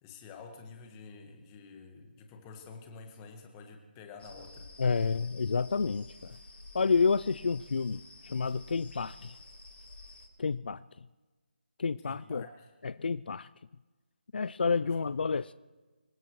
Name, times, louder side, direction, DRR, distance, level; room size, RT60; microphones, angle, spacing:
voice 1, 0.0-4.7 12.0-12.7, left 4 dB, 15° left, 1.4 m, -49 dB
sound 1, 4.2-10.3, left 2 dB, 85° left, 3.4 m, -51 dB
voice 2, 4.8-6.4 6.7-9.3 10.4-10.8 11.8-12.5 12.8-13.5 14.3-15.5, left 5 dB, 60° left, 0.4 m, -29 dB
26.0 x 15.5 x 3.1 m
figure-of-eight pair, 165°, 6 cm